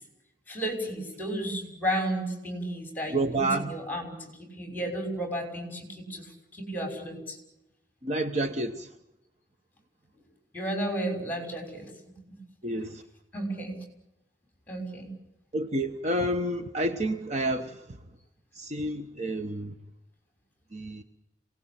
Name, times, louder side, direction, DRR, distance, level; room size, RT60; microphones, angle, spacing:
voice 1, 0.5-7.4 10.5-11.9 12.3-12.4 13.3-13.8 14.7-15.1, right 1 dB, 10° left, 3 dB, 5.9 m, -33 dB
voice 2, 3.1-3.7 8.0-8.9 12.6-13.0 15.5-17.8 18.5-19.7 20.7-21.0, right 1 dB, 35° right, 7 dB, 1.0 m, -29 dB
27.0 x 19.0 x 8.8 m, 0.90 s
head